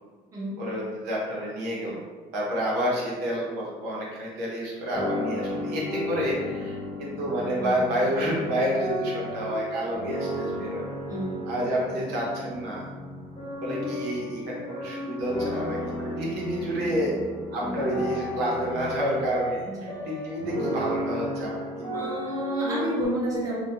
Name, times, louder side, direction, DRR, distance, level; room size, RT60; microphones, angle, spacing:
voice 1, 0.6-2.0 2.3-10.8 11.5-12.8 13.6-17.1 17.5-21.5 21.8-22.3, equal, 75° right, -4 dB, 0.8 m, -29 dB
sound 1, 4.9-23.0, equal, 25° left, 0.5 m, -33 dB
voice 2, 7.6-7.9 11.1-11.4 17.6-18.0 19.7-19.9 21.9-23.7, right 1 dB, 20° right, -6 dB, 0.7 m, -31 dB
2.3 x 2.2 x 2.8 m, 1.4 s
cardioid pair, 130°, 17 cm